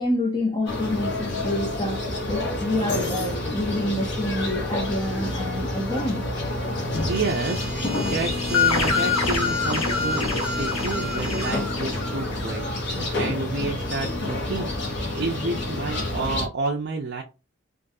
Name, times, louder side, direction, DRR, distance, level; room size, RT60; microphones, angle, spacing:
voice 1, 0.0-6.3, left 1 dB, 20° left, 0.7 m, -27 dB
sound 1, 0.7-16.5, left 1 dB, 55° left, 0.9 m, -28 dB
sound 2, 6.9-11.6, equal, 5° right, 0.9 m, -37 dB
voice 2, 7.1-17.2, right 3 dB, 50° right, 0.5 m, -30 dB
sound 3, 8.5-12.9, left 5 dB, 85° left, 0.8 m, -26 dB
3.6 x 2.3 x 2.6 m
head